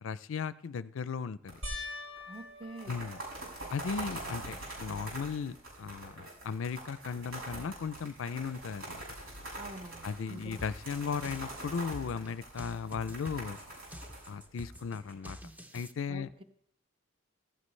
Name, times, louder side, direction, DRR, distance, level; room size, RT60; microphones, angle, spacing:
voice 1, 0.0-1.6 2.9-3.2 3.7-9.0 10.0-13.6 14.3-15.4 15.7-16.3, left 6 dB, 70° left, 16 dB, 0.4 m, -36 dB
sound 1, 1.5-1.9 2.2-2.3 2.6-15.1, right 1 dB, 85° right, 6.7 m, -44 dB
sound 2, 1.6-4.2 4.8-5.4 5.7-5.8 9.1-9.2, left 2 dB, 70° right, 3.0 m, -44 dB
voice 2, 2.3-3.0 9.5-10.6 16.1-16.4, right 2 dB, 25° right, 7 dB, 1.0 m, -46 dB
sound 3, 10.6-15.9, equal, 10° right, 0.6 m, -47 dB
15.0 x 13.5 x 3.2 m, 0.68 s
head